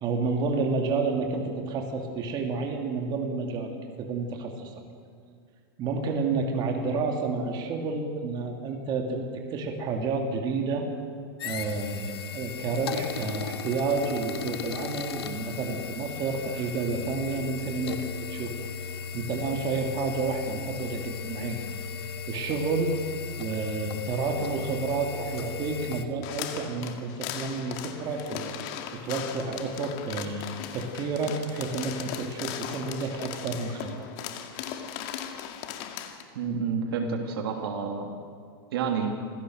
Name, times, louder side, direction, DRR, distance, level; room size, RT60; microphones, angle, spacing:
voice 1, 0.0-4.7 5.8-10.9 11.4-18.5 18.9-21.6 22.3-23.0 23.4-28.5 29.0-34.1, right 4 dB, 35° right, 2 dB, 2.6 m, -30 dB
sound 1, 11.4-26.0, left 7 dB, 85° left, 1.6 m, -37 dB
sound 2, 26.2-36.2, left 9 dB, 50° left, 2.1 m, -38 dB
voice 2, 36.3-38.1 38.7-39.2, right 5 dB, 75° right, 3 dB, 3.0 m, -29 dB
26.0 x 16.5 x 6.4 m, 2.1 s
hypercardioid pair, 130°, 13 cm